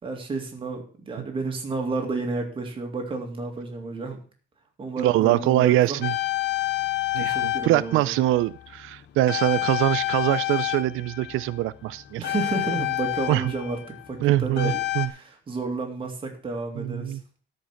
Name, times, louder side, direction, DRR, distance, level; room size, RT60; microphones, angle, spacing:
voice 1, 0.0-4.2 4.8-6.0 6.6-6.7 7.2-8.1 12.2-17.2, right 3 dB, 25° right, 3 dB, 2.3 m, -31 dB
voice 2, 5.0-6.1 7.1-12.3 13.3-13.4 14.2-15.1 16.8-17.2, right 15 dB, 85° right, 16 dB, 0.5 m, -23 dB
sound 1, 6.0-9.0 9.3-15.1, left 16 dB, 60° left, 0.9 m, -29 dB
13.0 x 5.4 x 7.1 m, 0.42 s
cardioid pair, 175°, 20 cm